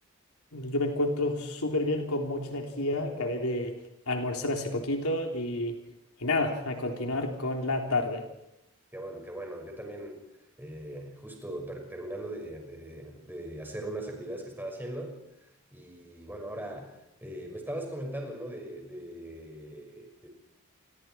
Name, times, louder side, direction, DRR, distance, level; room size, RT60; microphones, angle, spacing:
voice 1, 0.5-3.8 4.1-5.8 6.2-8.3, left 2 dB, 80° left, 2 dB, 3.6 m, -30 dB
voice 2, 8.9-10.2 10.6-15.2 15.4-20.3, right 1 dB, 10° right, 2 dB, 5.8 m, -40 dB
29.0 x 24.0 x 4.6 m, 0.86 s
head